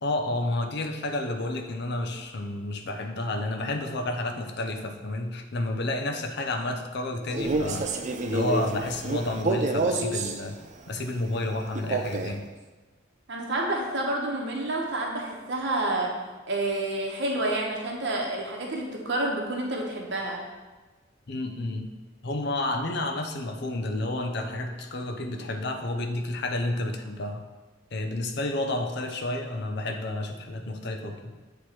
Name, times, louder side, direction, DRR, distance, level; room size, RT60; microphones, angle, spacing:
voice 1, 0.0-7.9 8.2-10.6 10.9-12.4 21.3-21.9 22.2-27.5 27.9-31.3, left 2 dB, 60° left, 5 dB, 0.6 m, -30 dB
Male speech man speaking, 7.3-10.4 11.7-12.4, right 3 dB, 40° right, 0.4 m, -28 dB
voice 2, 13.3-16.1 16.5-20.4, right 2 dB, 65° right, -1 dB, 0.9 m, -29 dB
8.0 x 3.1 x 4.3 m, 1.2 s
head